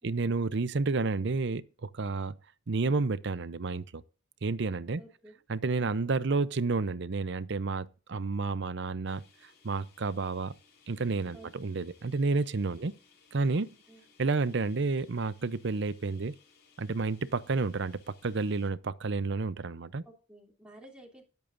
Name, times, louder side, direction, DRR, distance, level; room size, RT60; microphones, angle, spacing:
voice 1, 0.0-2.4 2.7-4.0 4.4-5.0 5.5-9.2 9.6-10.5 10.9-12.9 13.3-13.8 14.2-16.3 16.8-20.0, right 3 dB, 60° right, 0.6 m, -30 dB
voice 2, 5.0-5.4 11.3-11.8 13.9-14.0 20.0-21.2, right 1 dB, 5° right, 3.1 m, -53 dB
sound 1, 9.0-18.7, left 5 dB, 55° left, 7.5 m, -63 dB
20.0 x 8.4 x 2.6 m
head